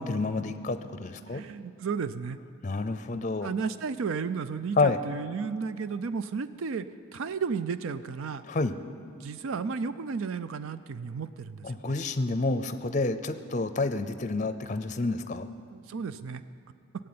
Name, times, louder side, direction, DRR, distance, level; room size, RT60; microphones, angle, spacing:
voice 1, 0.0-1.4 2.6-3.5 4.8-5.0 8.4-8.7 11.6-15.5, left 3 dB, 35° left, 10 dB, 0.5 m, -29 dB
voice 2, 1.3-2.4 3.4-6.9 7.1-8.4 9.2-11.9 15.7-16.4, right 5 dB, 70° right, 13 dB, 0.4 m, -33 dB
18.5 x 7.6 x 9.5 m, 2.3 s
head